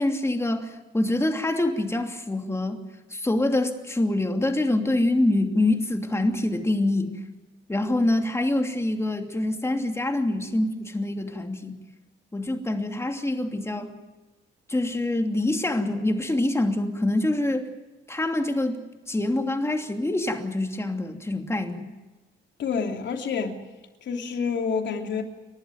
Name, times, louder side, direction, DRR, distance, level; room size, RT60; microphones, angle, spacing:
voice 1, 0.0-2.8 3.1-7.2 7.7-11.8 12.3-13.9 14.7-17.7 18.1-18.8 19.1-21.9, left 1 dB, 15° left, 2.9 m, -25 dB
voice 2, 22.6-23.6 24.0-25.2, left 5 dB, 65° left, 3.2 m, -28 dB
29.5 x 12.0 x 9.2 m
cardioid pair, 90°, 20 cm